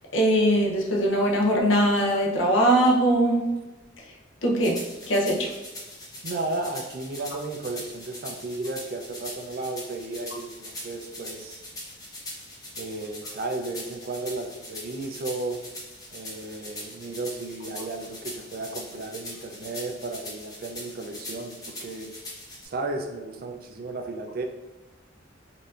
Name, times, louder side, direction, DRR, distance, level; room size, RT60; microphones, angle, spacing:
voice 1, 0.1-3.5 4.4-4.8 5.1-5.5, right 1 dB, 85° left, -1 dB, 0.7 m, -21 dB
sound 1, 4.6-22.7, left 1 dB, 20° left, 0.8 m, -41 dB
voice 2, 6.2-11.6 12.7-15.6 16.1-22.1 22.6-24.4, right 2 dB, 50° right, 4 dB, 0.4 m, -34 dB
4.1 x 2.6 x 2.4 m, 1.1 s
head